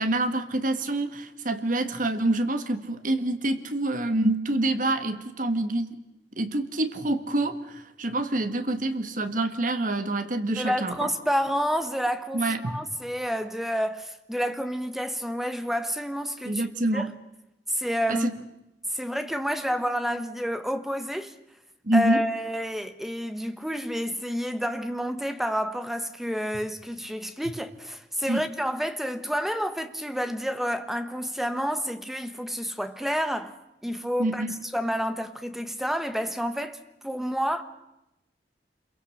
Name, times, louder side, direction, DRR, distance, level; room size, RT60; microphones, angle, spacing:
voice 1, 0.0-6.0 6.4-11.1 12.3-12.8 16.5-17.1 18.1-18.4 21.8-22.2 28.3-28.4 34.2-34.6, right 2 dB, 50° right, 1.8 m, -26 dB
voice 2, 10.6-16.7 16.9-17.1 17.7-18.3 18.9-21.3 21.9-33.5 33.8-34.4 34.7-36.8 37.0-37.6, equal, ahead, 1.3 m, -29 dB
27.0 x 23.0 x 6.6 m
head